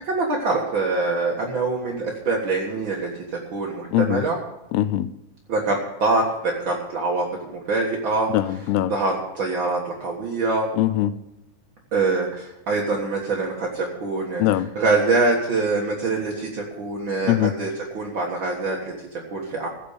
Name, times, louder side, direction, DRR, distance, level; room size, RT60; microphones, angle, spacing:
voice 1, 0.0-3.1 3.5-4.4 5.5-8.6 8.9-10.7 11.9-19.7, right 3 dB, 60° right, 1.2 m, -24 dB
voice 2, 3.9-4.2 4.7-5.1 8.3-8.9 10.8-11.1 14.4-14.7 17.3-17.5, left 14 dB, 85° left, 2.5 m, -21 dB
16.0 x 7.0 x 6.6 m
omnidirectional pair, 4.7 m